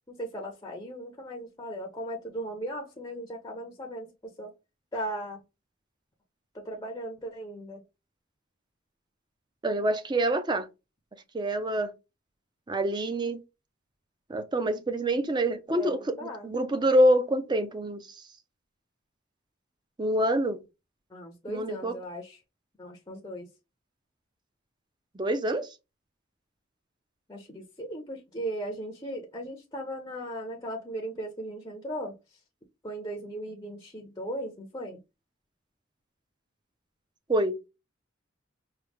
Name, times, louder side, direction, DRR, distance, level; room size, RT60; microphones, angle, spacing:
voice 1, 0.1-4.5 4.9-5.4 6.5-7.8 15.7-16.5 21.1-22.4 22.8-23.5 27.3-32.4 32.8-35.0, right 1 dB, 20° left, 0.6 m, -37 dB
voice 2, 9.6-10.7 11.3-11.9 12.7-13.4 14.3-16.0 16.4-18.0 20.0-20.6 21.5-21.9 25.2-25.7 37.3-37.6, right 1 dB, 20° right, 0.5 m, -26 dB
4.9 x 2.2 x 3.5 m
head